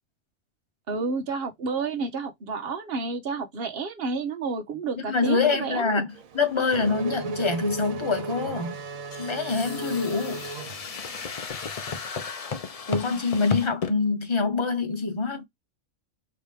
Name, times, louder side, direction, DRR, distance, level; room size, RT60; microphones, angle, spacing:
voice 1, 0.9-6.0 13.1-13.2, right 4 dB, 50° right, 1.1 m, -30 dB
voice 2, 5.1-6.1 6.3-8.8 9.2-10.4 12.9-15.5, left 4 dB, 25° left, 0.9 m, -25 dB
Race car auto racing / Accelerating revving vroom, 6.1-11.4, right 4 dB, 85° right, 1.3 m, -36 dB
sound 1, 9.1-13.9, left 4 dB, 50° left, 0.4 m, -34 dB
5.2 x 3.0 x 3.3 m
omnidirectional pair, 1.4 m